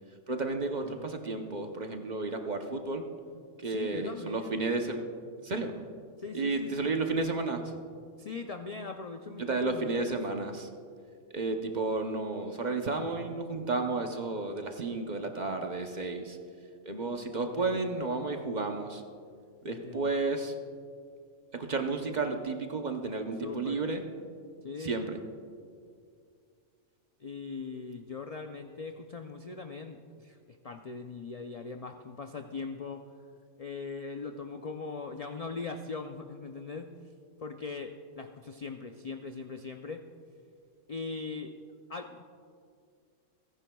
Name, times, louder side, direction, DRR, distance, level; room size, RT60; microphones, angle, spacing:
voice 1, 0.3-3.0 3.6-5.0 5.4-5.7 6.3-7.7 9.4-10.7 11.3-16.4 16.9-19.0 19.6-20.5 21.5-24.0 24.8-25.2, right 3 dB, 40° right, 4 dB, 0.8 m, -32 dB
voice 2, 3.6-4.6 6.2-6.9 8.2-10.2 17.6-18.0 19.7-20.1 23.4-23.8 24.6-25.0 27.2-33.1 33.6-36.9 37.4-40.1 40.9-41.6 41.9-42.2, left 4 dB, 55° left, 6 dB, 0.4 m, -40 dB
29.0 x 10.0 x 2.3 m, 2.2 s
omnidirectional pair, 1.3 m